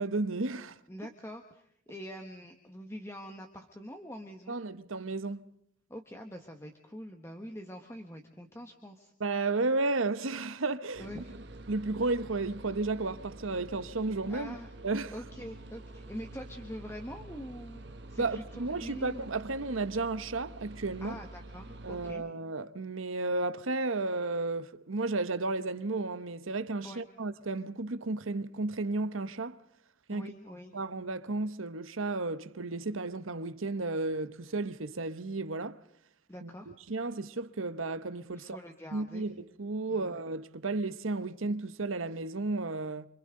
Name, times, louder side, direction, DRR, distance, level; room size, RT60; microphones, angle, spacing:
voice 1, 0.0-0.8 4.5-5.4 9.2-11.2 11.7-14.5 14.8-15.1 18.2-21.2 21.8-29.6 30.1-30.3 30.7-35.8 36.4-38.6 38.9-43.1, right 3 dB, 90° right, 1.1 m, -33 dB
voice 2, 0.9-4.6 5.9-9.1 11.0-11.3 14.3-14.7 15.1-17.8 18.1-19.3 21.0-22.2 26.8-27.1 30.1-30.7 36.3-36.7 38.3-39.3 39.9-40.2, equal, 15° left, 1.5 m, -44 dB
sound 1, 10.9-22.1, right 2 dB, 55° right, 1.5 m, -47 dB
29.5 x 26.0 x 3.9 m
head